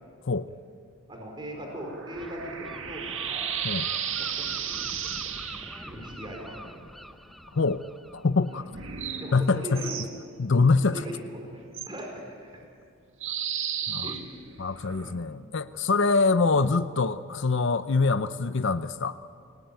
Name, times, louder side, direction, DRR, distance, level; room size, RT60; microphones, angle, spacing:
voice 1, 1.1-3.5 3.8-5.4 5.9-6.8 8.5-8.7 9.2-10.0 10.9-12.1 12.5-12.6 13.5-13.7 14.0-14.4 14.9-15.2, right 1 dB, 25° right, 0 dB, 4.6 m, -40 dB
sound 1, 1.4-5.9 8.7-10.1 11.7-11.9 13.2-15.1, right 8 dB, 65° right, 1.9 m, -34 dB
Gull seagull, 2.1-9.6, equal, ahead, 0.8 m, -46 dB
voice 2, 7.5-7.8 8.1-8.6 9.3-9.8 10.4-11.0 13.9-14.1 14.6-19.2, left 4 dB, 60° left, 11 dB, 0.6 m, -24 dB
28.5 x 19.0 x 9.2 m, 2.4 s
head